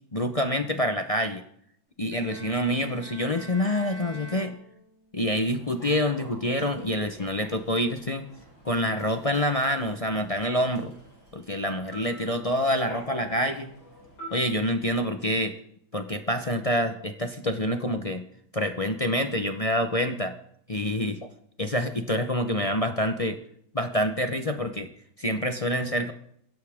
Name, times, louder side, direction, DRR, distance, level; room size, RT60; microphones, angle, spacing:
voice 1, 0.1-1.4 2.0-4.6 5.1-8.3 8.6-10.9 11.3-13.7 14.3-15.5 15.9-18.2 18.5-20.3 20.7-21.2 21.6-23.4 23.7-24.9 25.2-26.1, equal, 30° left, 6 dB, 0.6 m, -27 dB
Bowed string instrument, 2.1-5.2, equal, 5° right, 2.7 m, -45 dB
Human voice / Subway metro underground, 5.5-14.9, equal, 90° left, 8.5 m, -47 dB
21.5 x 16.5 x 3.6 m, 0.69 s
omnidirectional pair, 2.1 m